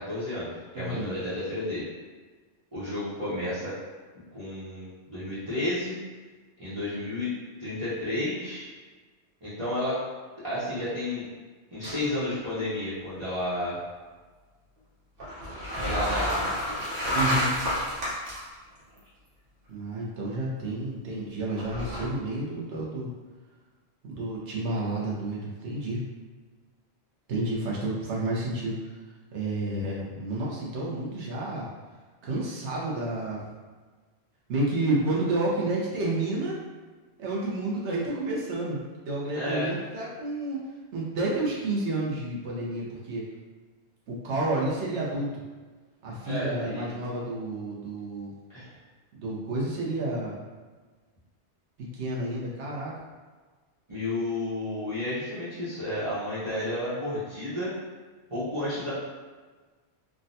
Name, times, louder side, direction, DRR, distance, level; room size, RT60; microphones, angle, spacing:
voice 1, 0.0-1.8 2.7-3.7 4.3-6.0 6.6-7.3 7.6-8.7 9.4-10.0 10.4-11.3 11.7-13.8 15.6-16.5 39.3-39.7 46.3-46.8 48.5-48.7 53.9-57.7 58.3-58.9, left 1 dB, 30° right, -14 dB, 0.9 m, -31 dB
voice 2, 0.7-1.1 17.1-17.6 19.7-23.1 24.1-26.1 27.3-28.8 29.3-31.7 32.2-33.4 34.5-36.6 37.2-38.8 39.0-40.6 40.9-43.3 44.1-45.4 46.0-48.3 49.1-50.3 51.8-52.9, right 2 dB, 85° right, -4 dB, 1.1 m, -30 dB
sound 1, 11.8-12.3 12.5-12.6 15.2-18.4 19.0-19.1 21.5-22.0, equal, 55° right, 1.0 m, -29 dB
3.5 x 2.2 x 2.6 m, 1.4 s
omnidirectional pair, 1.1 m